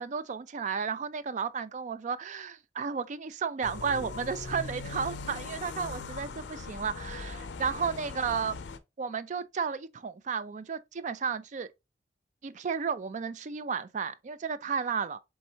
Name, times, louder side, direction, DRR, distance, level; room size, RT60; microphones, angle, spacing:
voice 1, 0.0-8.6 9.0-11.7 12.4-15.2, right 6 dB, 40° right, 0.4 m, -33 dB
sound 1, 3.6-8.8, left 4 dB, 80° left, 0.5 m, -40 dB
4.3 x 3.5 x 2.8 m
head